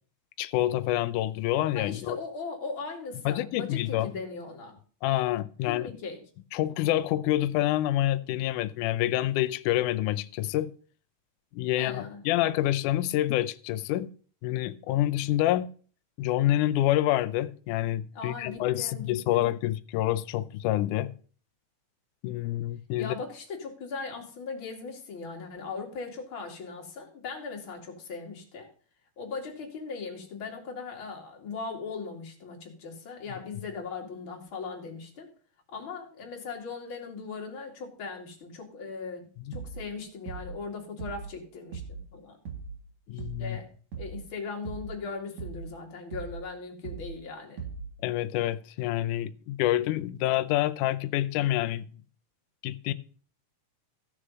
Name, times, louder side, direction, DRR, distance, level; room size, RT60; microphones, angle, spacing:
voice 1, 0.4-2.2 3.3-4.1 5.0-5.9 6.5-10.7 11.5-14.1 14.4-15.7 16.2-21.1 22.2-23.1 43.1-43.6 48.0-51.9 52.6-52.9, left 14 dB, 80° left, 2.1 m, -27 dB
voice 2, 1.7-4.8 5.7-6.2 11.8-12.2 18.1-19.5 23.0-28.7 29.2-35.3 35.7-39.3 39.5-42.4 43.1-43.7 44.0-47.6, left 4 dB, 40° left, 3.1 m, -39 dB
sound 1, 39.5-39.9 40.3-40.6 41.0-41.4 41.7-42.1 42.5-42.8 43.2-43.6 43.9-44.3 44.6-45.0 45.4-45.8 46.1-46.5 46.8-47.2 47.6-48.0, right 5 dB, 60° right, 2.7 m, -39 dB
15.0 x 6.4 x 5.4 m
omnidirectional pair, 3.7 m